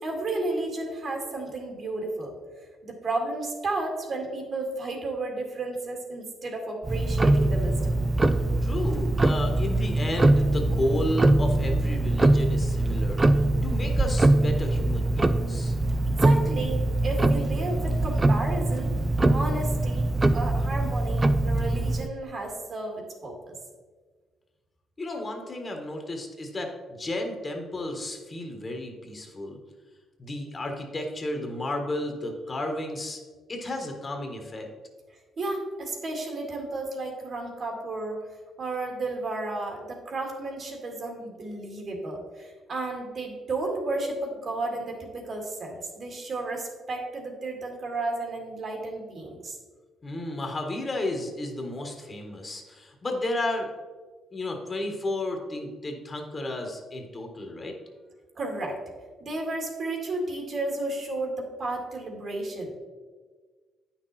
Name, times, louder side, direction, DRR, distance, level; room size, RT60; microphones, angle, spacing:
voice 1, 0.0-8.0 16.2-19.0 19.3-20.1 20.3-23.6 35.4-38.2 38.6-49.6 58.4-58.8 59.2-62.8, right 2 dB, 50° right, 1 dB, 2.1 m, -33 dB
Tick-tock, 6.8-22.1, right 2 dB, 20° right, 0.4 m, -23 dB
voice 2, 8.6-15.7 25.0-29.6 30.2-33.2 33.5-34.7 50.0-53.7 54.3-57.8, left 1 dB, 30° left, 3 dB, 1.4 m, -32 dB
9.2 x 6.0 x 4.2 m, 1.4 s
cardioid pair, 90°, 0 cm